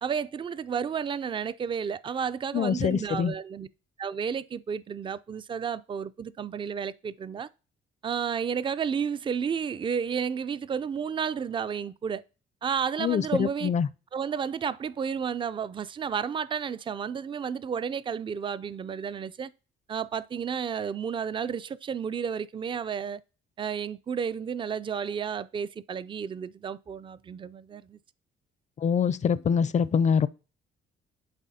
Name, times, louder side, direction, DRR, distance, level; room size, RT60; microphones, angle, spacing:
voice 1, 0.0-3.7 4.0-7.5 8.0-12.2 12.6-13.7 14.1-19.5 19.9-23.2 23.6-28.0, right 7 dB, 25° right, 0.3 m, -32 dB
voice 2, 2.5-3.3 13.0-13.9 28.8-30.3, left 7 dB, 35° left, 0.4 m, -24 dB
11.5 x 4.1 x 2.7 m
cardioid pair, 90°, 20 cm